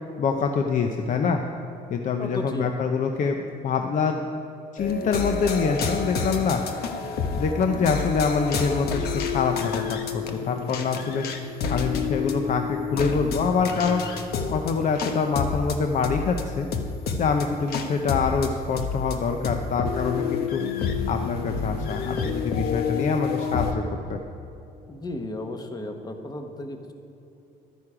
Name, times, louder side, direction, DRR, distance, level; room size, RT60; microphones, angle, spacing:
voice 1, 0.2-1.4 1.9-3.4 3.6-4.2 4.7-6.6 7.3-11.2 11.7-14.0 14.5-16.7 17.2-20.6 21.1-23.8 24.1-24.2, left 5 dB, 50° left, 4 dB, 0.7 m, -25 dB
voice 2, 2.2-2.7 24.9-26.9, left 1 dB, 25° left, 5 dB, 1.1 m, -34 dB
sound 1, 4.8-23.7, left 5 dB, 70° left, 1.1 m, -29 dB
12.0 x 9.4 x 4.9 m, 2.8 s
cardioid pair, 110°, 17 cm